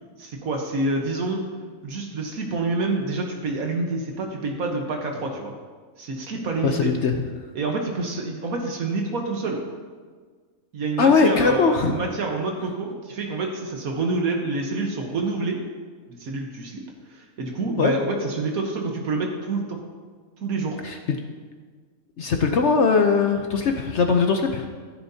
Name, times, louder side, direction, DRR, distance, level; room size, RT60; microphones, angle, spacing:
voice 1, 0.2-1.4 1.8-5.5 6.0-6.9 7.5-9.6 10.7-15.6 16.2-16.8 17.1-19.8 20.4-20.8, right 3 dB, 80° right, 1 dB, 1.6 m, -27 dB
voice 2, 6.6-7.2 11.0-12.0 17.8-17.9 20.8-21.2 22.2-24.7, left 5 dB, 60° left, 4 dB, 0.9 m, -20 dB
14.5 x 10.5 x 2.8 m, 1.5 s
omnidirectional pair, 1.5 m